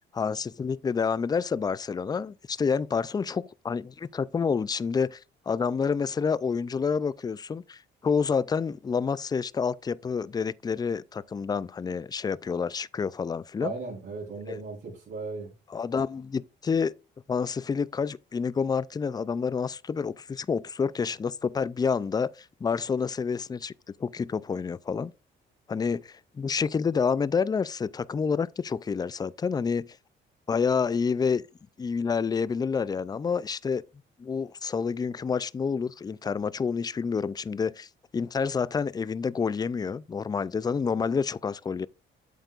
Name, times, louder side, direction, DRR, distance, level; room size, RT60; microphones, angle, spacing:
voice 1, 0.1-5.2 5.5-13.7 14.5-14.6 15.7-16.9 17.3-23.7 24.0-25.1 25.7-29.9 30.5-31.4 31.8-33.8 34.2-37.9 38.1-41.9, left 5 dB, 20° left, 0.3 m, -28 dB
voice 2, 13.6-15.5, right 3 dB, 65° right, 4.1 m, -36 dB
8.2 x 7.8 x 2.4 m
cardioid pair, 90°, 20 cm